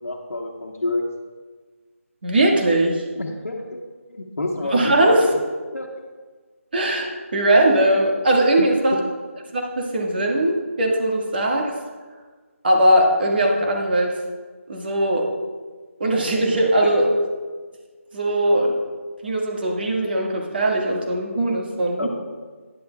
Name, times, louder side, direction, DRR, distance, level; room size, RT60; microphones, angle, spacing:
voice 1, 0.0-1.1 3.1-3.8 4.1-5.4 5.7-5.9 8.6-9.0 16.8-17.2 22.0-22.1, left 2 dB, 85° left, -3 dB, 1.2 m, -28 dB
voice 2, 2.2-3.0 4.7-5.3 6.7-9.0 9.5-11.7 12.6-14.1 14.7-15.3 16.0-17.1 18.1-18.7 19.2-22.1, right 1 dB, 45° right, 0 dB, 1.6 m, -20 dB
11.5 x 10.5 x 2.3 m, 1.4 s
figure-of-eight pair, 165°, 8 cm